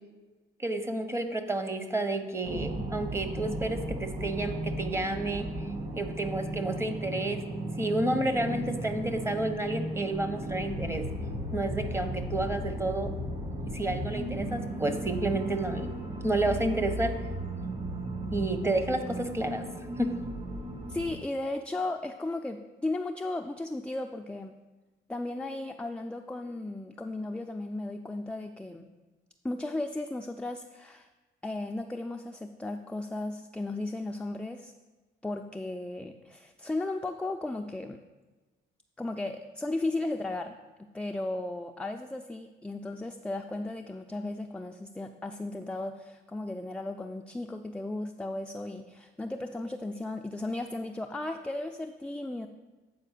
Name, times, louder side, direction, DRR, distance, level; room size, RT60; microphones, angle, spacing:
voice 1, 0.6-5.5 5.9-7.4 7.8-11.1 11.5-13.1 13.6-16.0 16.2-17.2 18.3-19.7 20.0-20.1, right 2 dB, 15° right, 8 dB, 0.9 m, -30 dB
sound 1, 2.4-21.2, right 1 dB, 35° right, 1.8 m, -35 dB
voice 2, 20.9-24.5 25.1-28.9 29.4-31.1 31.4-34.7 35.2-38.0 39.0-40.5 40.9-52.5, left 2 dB, 5° left, 4 dB, 0.4 m, -35 dB
8.4 x 4.4 x 6.6 m, 1.2 s
cardioid pair, 90°, 20 cm